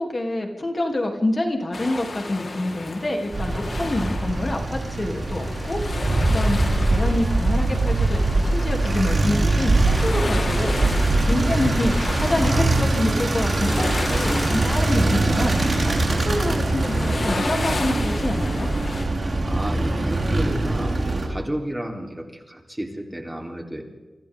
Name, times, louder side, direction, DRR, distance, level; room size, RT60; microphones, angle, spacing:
voice 1, 0.0-5.8 6.3-11.9 12.2-18.8, left 1 dB, 35° left, 2 dB, 3.1 m, -27 dB
sound 1, 1.7-19.1, left 3 dB, 50° left, 4.0 m, -33 dB
sound 2, 3.3-21.3, right 2 dB, 45° right, 6.0 m, -22 dB
voice 2, 11.4-11.7 19.5-23.8, right 1 dB, 10° right, 2 dB, 3.7 m, -32 dB
28.5 x 25.0 x 3.8 m, 1.2 s
wide cardioid pair, 105°, 0 cm